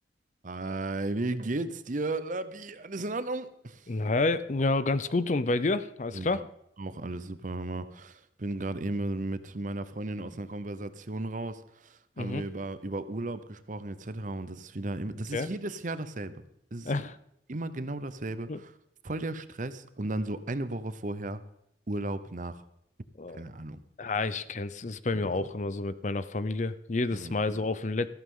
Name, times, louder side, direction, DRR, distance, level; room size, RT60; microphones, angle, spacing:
voice 1, 0.4-3.9 6.1-6.4 6.8-16.3 16.7-17.1 17.5-18.7 19.0-21.4 21.9-22.6 23.4-23.8 25.1-25.5 27.1-27.3, right 2 dB, 45° right, 0.8 m, -35 dB
voice 2, 3.9-6.4 12.2-12.4 15.3-15.5 16.8-17.2 18.5-18.6 23.2-23.4 24.0-28.1, left 3 dB, 45° left, 0.6 m, -29 dB
14.0 x 14.0 x 3.8 m
head